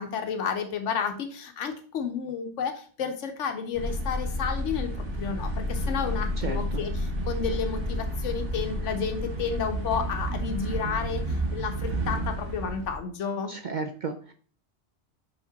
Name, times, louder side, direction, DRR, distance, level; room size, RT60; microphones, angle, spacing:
voice 1, 0.0-13.5, left 6 dB, 85° left, 5 dB, 1.1 m, -31 dB
sound 1, 3.7-13.0, equal, 85° right, 1.7 m, -31 dB
voice 2, 6.4-6.8 13.5-14.3, right 4 dB, 55° right, 6 dB, 0.6 m, -33 dB
5.1 x 5.0 x 3.9 m, 0.43 s
omnidirectional pair, 1.2 m